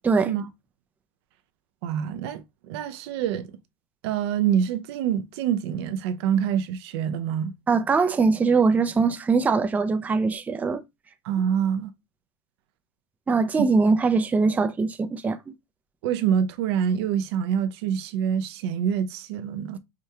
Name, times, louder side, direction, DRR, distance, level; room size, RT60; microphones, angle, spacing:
voice 1, 1.8-3.5 4.0-7.5 11.2-11.9 13.6-13.7 16.0-19.8, right 8 dB, 75° right, 0.5 m, -26 dB
voice 2, 7.7-10.8 13.3-15.4, right 4 dB, 10° right, 0.3 m, -22 dB
4.9 x 2.2 x 2.8 m
supercardioid pair, 125°, 14 cm